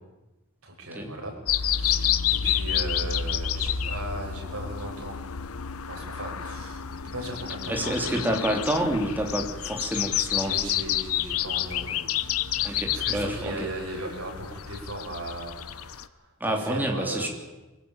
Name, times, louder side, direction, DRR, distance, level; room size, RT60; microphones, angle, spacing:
voice 1, 0.6-1.3 1.6-5.2 5.9-8.2 10.3-17.3, right 1 dB, 80° right, 1 dB, 6.8 m, -37 dB
sound 1, 1.5-16.0, left 9 dB, 85° left, 0.9 m, -29 dB
voice 2, 7.7-10.7 12.6-13.7 16.4-17.3, right 1 dB, 10° right, 2 dB, 3.2 m, -28 dB
24.0 x 16.5 x 9.0 m, 1.1 s
head